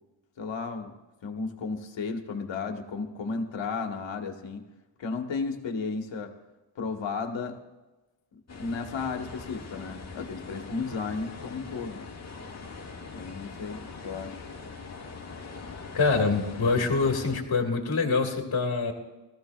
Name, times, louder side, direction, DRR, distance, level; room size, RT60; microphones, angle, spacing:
voice 1, 0.4-0.9 1.2-4.6 5.0-6.3 6.7-7.6 8.6-12.0 13.1-14.4, left 4 dB, 70° left, 4 dB, 1.5 m, -34 dB
sound 1, 8.5-17.4, left 4 dB, 35° left, 1.7 m, -42 dB
voice 2, 15.9-18.9, left 4 dB, 50° left, 3 dB, 2.0 m, -25 dB
18.5 x 14.5 x 2.4 m, 1.1 s
cardioid pair, 110°, 47 cm